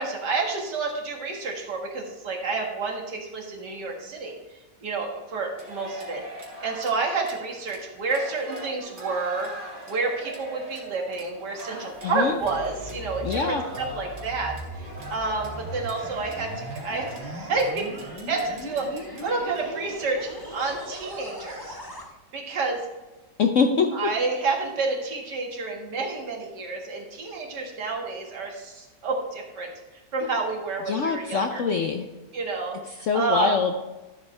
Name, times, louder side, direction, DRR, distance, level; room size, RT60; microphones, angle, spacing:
voice 1, 0.0-6.2 6.6-9.5 9.9-17.9 18.3-21.7 22.3-22.8 23.9-29.7 30.1-31.6 32.3-33.6, right 3 dB, 70° right, 0 dB, 2.3 m, -29 dB
sound 1, 5.6-20.8, equal, 50° right, 2.9 m, -41 dB
sound 2, 11.9-22.1, equal, 15° left, 1.1 m, -39 dB
voice 2, 12.0-12.3 13.2-13.6 23.4-23.9 30.9-32.1 33.0-33.7, left 5 dB, 60° left, 5 dB, 0.8 m, -23 dB
13.0 x 7.7 x 3.3 m, 1.1 s
omnidirectional pair, 1.9 m